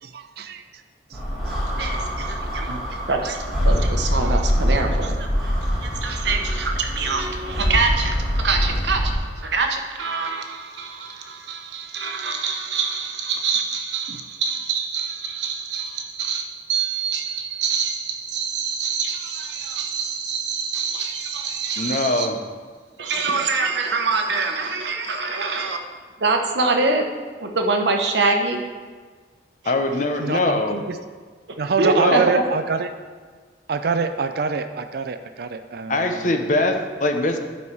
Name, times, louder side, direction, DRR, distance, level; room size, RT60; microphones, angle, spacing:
voice 1, 0.0-0.8 1.1-1.5 1.8-2.3 2.5-3.0 3.2-3.3 4.7-4.8 6.1-6.2 14.1-14.2 30.2-31.0 31.6-32.9 33.7-36.3, right 4 dB, 60° right, 9 dB, 0.4 m, -27 dB
sound 1, 1.1-9.1, equal, ahead, 2.2 m, -24 dB
voice 2, 1.8-2.8 3.1-5.5 5.8-22.3 23.0-25.8 26.2-27.0 27.4-28.6 31.8-32.4, right 4 dB, 75° right, 3 dB, 1.0 m, -25 dB
voice 3, 21.8-22.4 29.7-30.8 32.0-32.2 35.9-37.4, left 2 dB, 45° left, 5 dB, 0.8 m, -22 dB
11.0 x 5.5 x 4.7 m, 1.5 s
head